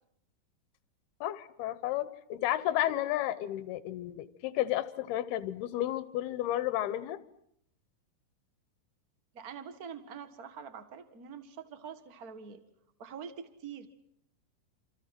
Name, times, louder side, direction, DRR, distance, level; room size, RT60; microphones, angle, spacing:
voice 1, 1.2-7.2, left 13 dB, 75° left, 14 dB, 3.0 m, -32 dB
voice 2, 9.3-12.6 13.0-13.9, right 7 dB, 60° right, 10 dB, 0.9 m, -45 dB
28.5 x 27.5 x 6.0 m, 0.71 s
omnidirectional pair, 4.7 m